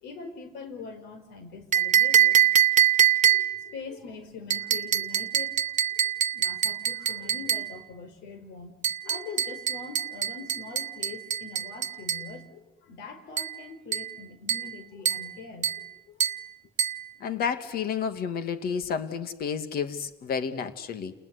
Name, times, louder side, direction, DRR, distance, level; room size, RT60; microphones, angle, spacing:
voice 1, 0.0-2.4 3.2-5.6 5.9-6.0 6.3-8.7 9.0-16.2, left 4 dB, 85° left, 10 dB, 5.1 m, -43 dB
sound 1, 1.7-3.7 4.5-7.7 8.8-12.3 13.4-13.6 13.9-14.2 14.5-14.8 15.1-15.3 15.6-15.9 16.2-16.5 16.8-17.0, right 9 dB, 45° right, 1.1 m, -24 dB
voice 2, 17.2-21.1, left 6 dB, 65° left, 10 dB, 2.5 m, -31 dB
30.0 x 20.0 x 9.8 m, 0.95 s
cardioid pair, 110°, 17 cm